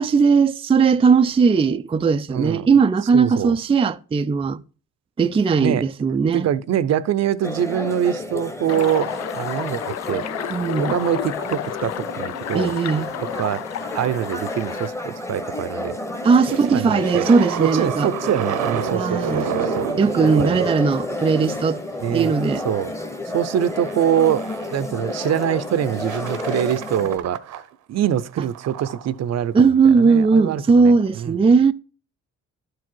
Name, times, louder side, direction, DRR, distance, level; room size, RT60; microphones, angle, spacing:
voice 1, 0.0-4.6 5.2-6.5 10.5-11.0 12.5-13.1 16.2-18.1 18.9-19.5 20.0-21.8 22.1-22.6 29.5-31.7, right 5 dB, 20° right, 0.4 m, -18 dB
voice 2, 2.3-2.7 3.1-3.6 5.6-5.8 6.3-10.2 10.8-12.7 13.4-13.6 13.9-16.0 16.7-17.3 17.6-19.9 20.4-20.6 22.0-22.3 22.6-22.9 23.3-24.5 24.7-31.4, right 10 dB, 60° right, 0.7 m, -24 dB
sound 1, 7.4-27.2, left 1 dB, 10° left, 1.2 m, -31 dB
sound 2, 8.7-14.9, left 12 dB, 60° left, 0.5 m, -31 dB
sound 3, 16.5-21.7 22.4-22.7 23.0-24.8 25.4-25.6 26.0-27.7 28.0-29.1 30.9-31.1, right 9 dB, 85° right, 1.0 m, -31 dB
11.5 x 4.8 x 4.5 m
cardioid pair, 90°, 30 cm